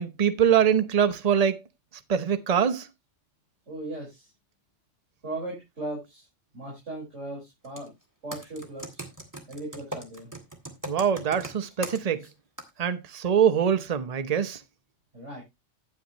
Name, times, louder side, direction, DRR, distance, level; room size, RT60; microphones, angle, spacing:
voice 1, 0.0-1.6 2.1-2.9 10.9-12.3 12.8-14.6, right 8 dB, 35° right, 0.8 m, -23 dB
voice 2, 3.7-4.2 5.2-6.3 6.5-7.9 8.2-9.0 9.5-10.3 15.1-15.4, right 2 dB, 75° right, 5.4 m, -37 dB
Computer keyboard, 7.6-7.9 8.3-12.3 12.6-12.7, right 1 dB, 15° right, 1.8 m, -38 dB
9.5 x 9.1 x 3.0 m
omnidirectional pair, 1.2 m